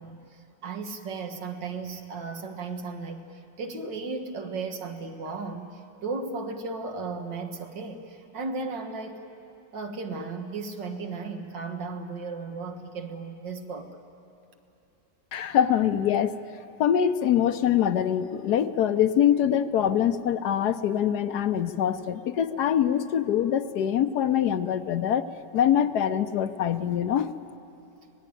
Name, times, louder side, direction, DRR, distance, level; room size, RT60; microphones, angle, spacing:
voice 1, 0.0-9.2 9.7-13.9, right 4 dB, 90° right, 5 dB, 2.2 m, -35 dB
voice 2, 15.3-16.3 16.8-25.3 25.5-27.3, left 9 dB, 70° left, 11 dB, 1.2 m, -24 dB
25.5 x 19.0 x 9.1 m, 2.9 s
omnidirectional pair, 1.9 m